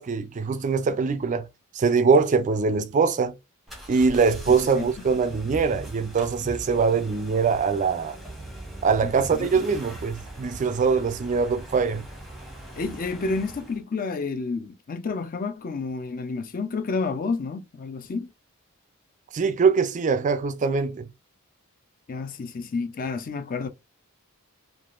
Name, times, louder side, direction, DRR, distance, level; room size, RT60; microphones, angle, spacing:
voice 1, 0.0-1.5 1.7-3.3 3.9-8.2 8.8-12.0 19.3-21.1, right 5 dB, 35° right, 0.3 m, -23 dB
sound 1, 3.7-13.8, right 1 dB, ahead, 0.8 m, -40 dB
voice 2, 4.5-4.9 9.0-9.6 12.7-18.3 22.1-23.7, left 4 dB, 40° left, 0.4 m, -30 dB
3.4 x 2.4 x 2.4 m
head